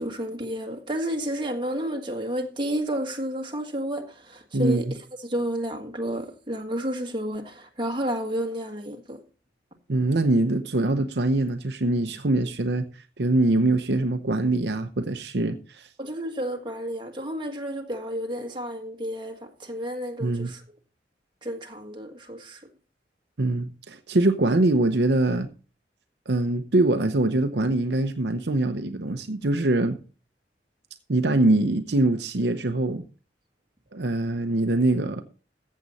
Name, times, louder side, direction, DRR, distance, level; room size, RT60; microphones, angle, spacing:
voice 1, 0.0-9.2 16.0-20.6 21.4-22.6, equal, 25° right, 1.7 m, -31 dB
voice 2, 9.9-15.9 20.2-20.5 23.4-25.5 26.3-30.0 31.1-33.0 33.9-35.2, right 2 dB, 65° right, 0.8 m, -23 dB
14.5 x 7.5 x 4.1 m
head